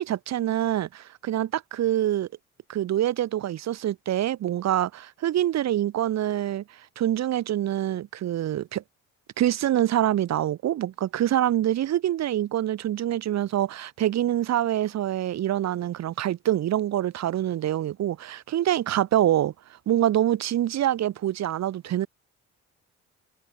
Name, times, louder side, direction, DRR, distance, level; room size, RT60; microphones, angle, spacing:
voice 1, 0.0-2.3 2.7-6.6 7.0-8.8 9.4-19.5 19.9-22.1, right 12 dB, 60° right, 1.0 m, -25 dB
cardioid pair, 90°, 30 cm